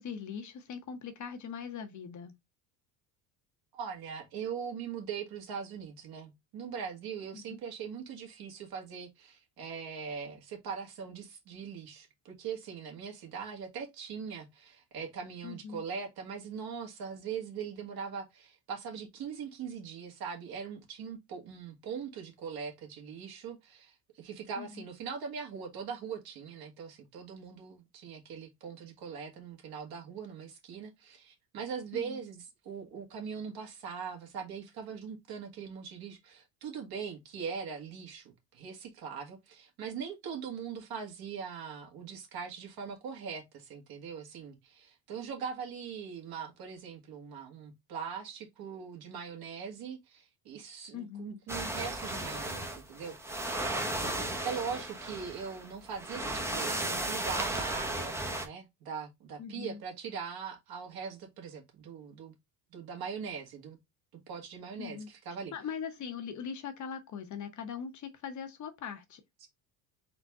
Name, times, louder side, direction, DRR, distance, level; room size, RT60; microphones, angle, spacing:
voice 1, 0.0-2.3 7.3-7.6 15.4-15.8 24.6-24.8 31.9-32.2 50.9-51.4 59.4-59.8 64.8-65.1 65.5-69.5, left 7 dB, 40° left, 0.9 m, -41 dB
voice 2, 3.7-53.4 54.4-62.3 62.7-63.8 64.3-65.5 69.4-69.5, right 6 dB, 55° right, 1.7 m, -41 dB
sound 1, 51.5-58.5, right 1 dB, 5° right, 0.7 m, -35 dB
4.0 x 3.3 x 3.6 m
cardioid pair, 120°, 43 cm